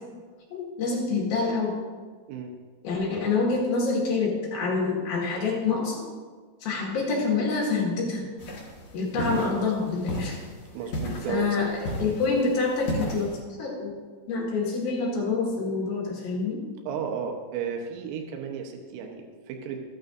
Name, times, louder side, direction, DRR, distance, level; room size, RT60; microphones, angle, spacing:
voice 1, 0.5-1.8 2.8-6.0 6.6-8.3 8.9-10.4 11.3-13.3 13.6-13.9 14.3-16.6, left 4 dB, 60° left, -3 dB, 2.8 m, -26 dB
sound 1, 8.4-13.4, equal, 75° left, 1.4 m, -35 dB
voice 2, 9.1-9.5 10.7-11.7 16.9-19.8, right 7 dB, 80° right, 2 dB, 3.5 m, -34 dB
15.0 x 9.2 x 2.6 m, 1.5 s
omnidirectional pair, 5.8 m